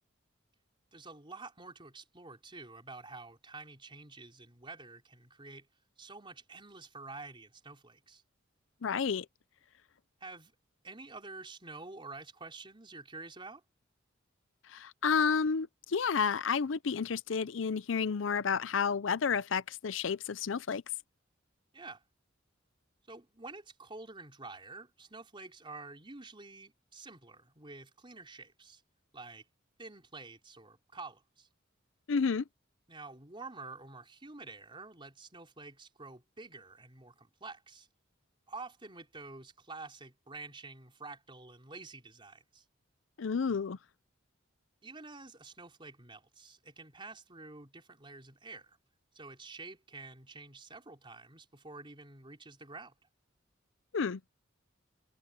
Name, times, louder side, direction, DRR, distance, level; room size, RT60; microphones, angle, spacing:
voice 1, 0.9-5.7 6.0-8.2 10.2-10.5 10.8-13.6 21.7-22.0 23.1-28.8 29.1-29.4 29.8-31.5 32.9-37.9 38.5-42.6 44.8-48.8 49.1-52.9, right 3 dB, 25° right, 4.2 m, -48 dB
voice 2, 8.8-9.3 14.7-20.8 32.1-32.4 43.2-43.8 53.9-54.2, left 6 dB, 75° left, 0.5 m, -31 dB
head